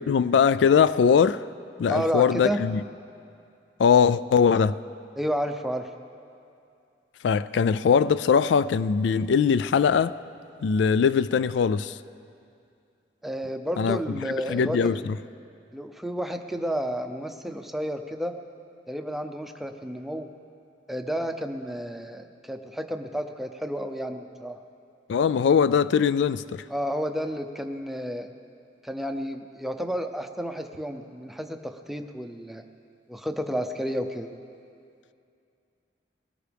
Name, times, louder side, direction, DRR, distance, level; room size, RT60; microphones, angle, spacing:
voice 1, 0.0-1.4 1.8-2.8 3.8-4.8 7.2-10.2 10.6-12.0 13.8-15.1 25.1-26.6, left 6 dB, 75° left, 0.3 m, -21 dB
voice 2, 1.9-2.6 5.2-5.9 13.2-15.0 15.7-18.3 18.9-20.3 20.9-24.6 26.7-28.3 28.8-32.6 33.1-34.3, equal, ahead, 0.6 m, -31 dB
21.5 x 18.0 x 3.4 m
head